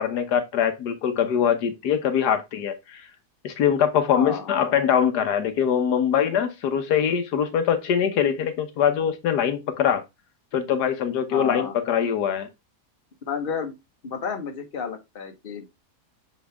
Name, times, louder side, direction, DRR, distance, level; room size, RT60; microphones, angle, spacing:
voice 1, 0.0-3.1 3.4-10.0 10.5-12.5, left 8 dB, 80° left, 1.5 m, -23 dB
voice 2, 4.1-4.5 11.3-11.7 13.3-13.7 14.0-15.7, left 6 dB, 35° left, 1.3 m, -31 dB
7.4 x 4.0 x 3.4 m
omnidirectional pair, 1.7 m